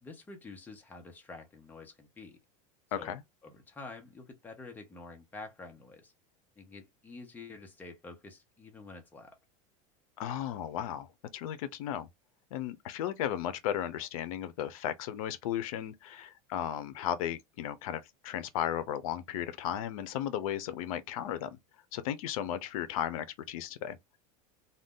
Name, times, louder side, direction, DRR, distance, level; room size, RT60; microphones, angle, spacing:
voice 1, 0.0-2.4 3.0-3.1 3.4-6.1 6.6-9.4, left 3 dB, 10° left, 0.6 m, -48 dB
voice 2, 2.9-3.2 10.2-11.1 11.3-12.1 12.5-21.6 21.9-24.0, left 10 dB, 80° left, 0.5 m, -35 dB
2.5 x 2.2 x 3.5 m
supercardioid pair, 150°, 18 cm